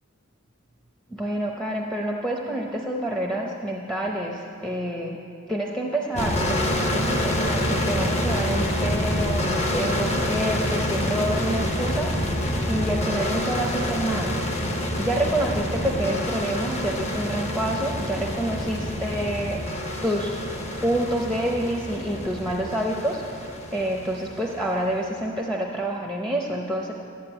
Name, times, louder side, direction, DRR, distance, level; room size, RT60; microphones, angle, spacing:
voice 1, 1.1-5.2 5.5-9.4 9.7-14.3 15.0-19.6 20.0-20.5 20.8-26.9, right 1 dB, 5° left, -1 dB, 0.7 m, -28 dB
sound 1, 6.2-24.8, left 1 dB, 30° left, 1.0 m, -27 dB
11.5 x 9.6 x 8.9 m, 2.6 s
head